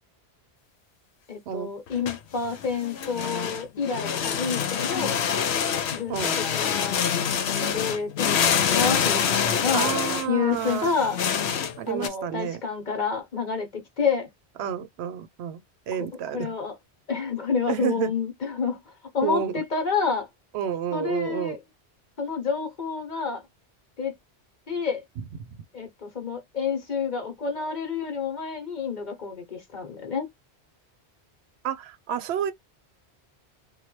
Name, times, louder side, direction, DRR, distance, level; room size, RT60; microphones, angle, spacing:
voice 1, 1.3-5.2 5.9-7.0 7.5-10.0 10.3-11.2 11.9-13.7 14.0-14.3 16.3-16.7 17.1-18.8 19.1-20.3 20.9-21.6 22.2-23.4 24.0-24.1 24.7-25.0 25.7-30.3, left 5 dB, 45° left, 1.0 m, -29 dB
sound 1, 1.9-12.1, left 7 dB, 75° left, 0.9 m, -26 dB
voice 2, 9.7-10.9 11.8-12.6 14.6-15.6 15.9-16.5 17.7-18.1 19.2-19.5 20.5-21.6 31.6-32.5, right 9 dB, 75° right, 0.8 m, -30 dB
3.1 x 2.2 x 2.9 m
omnidirectional pair, 1.1 m